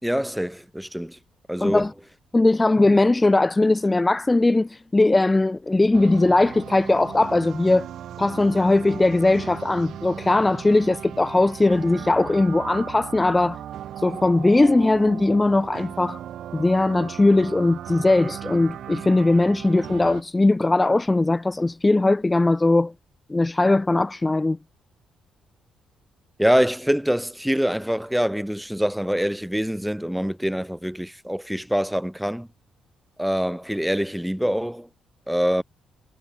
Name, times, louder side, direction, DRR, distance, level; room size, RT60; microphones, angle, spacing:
voice 1, 0.0-1.2 1.5-1.9 26.4-32.5 33.2-34.9 35.3-35.6, equal, ahead, 4.0 m, -24 dB
voice 2, 1.6-1.9 2.3-7.9 8.2-13.6 14.0-16.2 16.5-22.9 23.3-24.6, left 2 dB, 15° left, 7.0 m, -19 dB
sound 1, 5.9-20.2, right 11 dB, 70° right, 6.9 m, -37 dB
cardioid pair, 90°, 0 cm